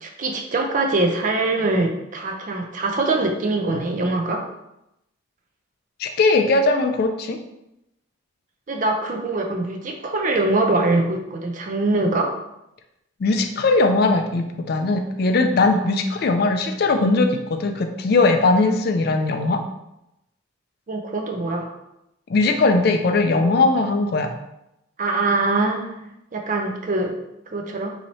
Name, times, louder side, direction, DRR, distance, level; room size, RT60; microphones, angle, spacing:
voice 1, 0.0-4.4 8.7-12.3 20.9-21.7 25.0-27.2 27.5-27.9, right 2 dB, 40° right, 3 dB, 0.4 m, -23 dB
voice 2, 6.0-7.4 13.2-19.6 22.3-24.3, left 3 dB, 50° left, 5 dB, 0.3 m, -19 dB
3.0 x 2.8 x 4.0 m, 0.87 s
head